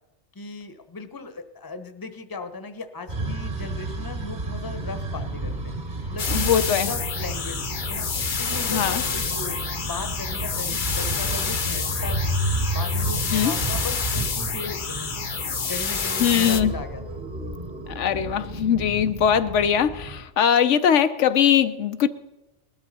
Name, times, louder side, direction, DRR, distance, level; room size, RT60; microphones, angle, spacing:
voice 1, 0.3-5.7 6.1-8.1 8.4-12.4 12.7-15.1 15.7-17.2, left 3 dB, 20° left, 9 dB, 0.9 m, -37 dB
sound 1, 3.1-20.2, right 2 dB, 35° right, 1.7 m, -31 dB
sound 2, 6.2-16.6, left 6 dB, 45° left, 0.9 m, -28 dB
voice 2, 6.3-6.9 8.7-9.0 13.3-13.5 16.2-16.7 17.9-22.1, left 8 dB, 75° left, 10 dB, 1.0 m, -21 dB
19.5 x 13.0 x 4.2 m, 1.0 s
omnidirectional pair, 1.2 m